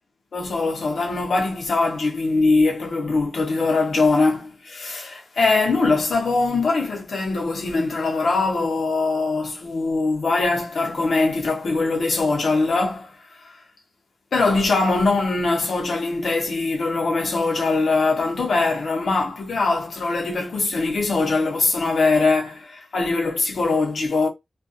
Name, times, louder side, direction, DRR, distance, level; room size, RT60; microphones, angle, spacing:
voice 1, 0.3-13.2 14.3-24.3, left 3 dB, 70° left, 0.8 m, -22 dB
2.3 x 2.2 x 2.5 m
wide cardioid pair, 150°, 0 cm